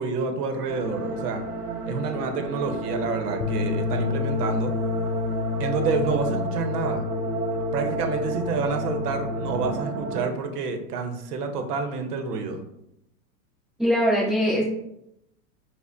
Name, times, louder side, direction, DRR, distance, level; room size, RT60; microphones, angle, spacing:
voice 1, 0.0-1.4 1.8-4.7 5.6-7.0 7.7-12.6, right 4 dB, 80° right, 6 dB, 0.7 m, -28 dB
sound 1, 0.7-10.2, right 2 dB, 45° right, 1.0 m, -31 dB
sound 2, 3.4-9.7, left 6 dB, 70° left, 0.5 m, -31 dB
voice 2, 13.8-14.6, equal, ahead, -9 dB, 0.4 m, -21 dB
4.9 x 2.1 x 2.4 m, 0.81 s
supercardioid pair, 150°, 46 cm